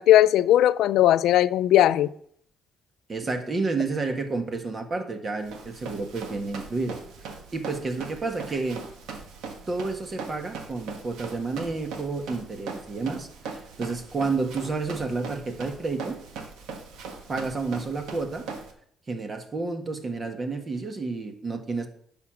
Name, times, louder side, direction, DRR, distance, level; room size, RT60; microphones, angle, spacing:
voice 1, 0.0-2.1, left 12 dB, 85° left, 0.4 m, -18 dB
voice 2, 3.1-7.0 7.2-8.8 9.7-16.2 17.3-18.5 19.1-21.9, right 3 dB, 35° right, 1.7 m, -30 dB
Run, 5.4-18.7, right 4 dB, 90° right, 1.5 m, -40 dB
9.7 x 6.0 x 6.1 m
cardioid pair, 90°, 0 cm